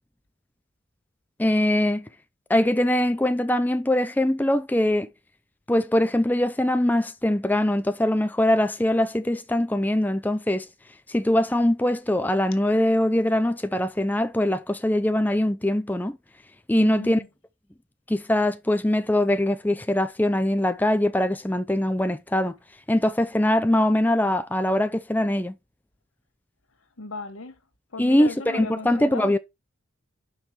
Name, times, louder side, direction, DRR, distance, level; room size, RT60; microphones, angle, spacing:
voice 1, 1.4-2.1 2.5-5.1 5.7-10.7 11.1-16.2 16.7-17.2 18.1-22.5 22.9-25.5 28.0-29.4, left 1 dB, 10° left, 0.4 m, -22 dB
voice 2, 16.7-17.3 27.0-27.6 27.9-29.4, left 3 dB, 85° left, 1.3 m, -36 dB
5.7 x 4.3 x 6.4 m
head